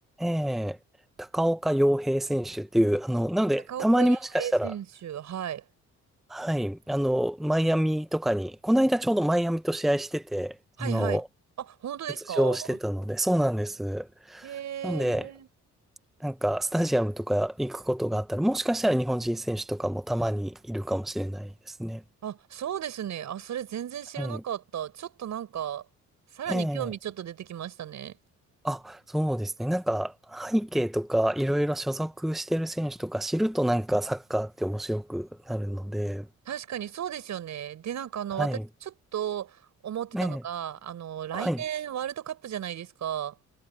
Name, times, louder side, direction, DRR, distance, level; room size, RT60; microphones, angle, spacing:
voice 1, 0.2-0.8 1.2-4.7 6.3-10.6 10.8-11.2 12.4-14.5 14.8-15.3 16.2-22.0 24.2-24.4 26.5-26.9 28.6-36.3 38.4-38.7 40.1-40.4 41.3-41.6, equal, ahead, 0.9 m, -27 dB
voice 2, 3.7-5.6 10.8-11.2 11.7-12.8 14.4-15.5 22.2-25.8 26.3-28.1 36.5-43.3, right 10 dB, 65° right, 6.6 m, -35 dB
cardioid pair, 90°, 30 cm